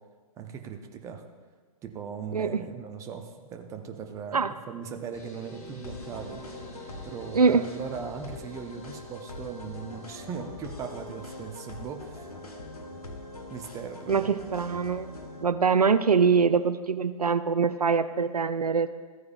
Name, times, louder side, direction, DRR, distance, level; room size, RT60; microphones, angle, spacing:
voice 1, 0.4-1.2 1.8-6.4 7.0-12.3 13.5-14.3, right 6 dB, 15° right, 5 dB, 0.7 m, -39 dB
sound 1, 5.1-10.1, right 1 dB, 15° left, 1.6 m, -49 dB
sound 2, 5.8-15.4, left 2 dB, 75° left, 1.4 m, -42 dB
voice 2, 14.1-15.1 15.4-18.9, right 5 dB, 80° right, 12 dB, 0.4 m, -23 dB
14.0 x 9.4 x 2.4 m, 1.5 s
figure-of-eight pair, 115°, 19 cm